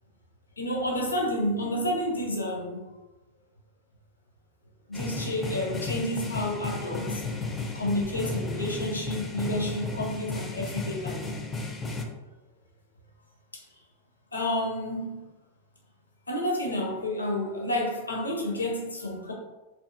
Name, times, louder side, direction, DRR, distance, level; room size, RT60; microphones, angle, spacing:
voice 1, 0.6-2.8 4.9-7.3 7.7-11.2 14.3-15.3 16.3-19.3, left 1 dB, 80° left, 0 dB, 0.6 m, -30 dB
sound 1, 4.9-12.0, left 3 dB, 15° left, 0.4 m, -34 dB
2.7 x 2.5 x 2.4 m, 1.1 s
figure-of-eight pair, 90°, 0 cm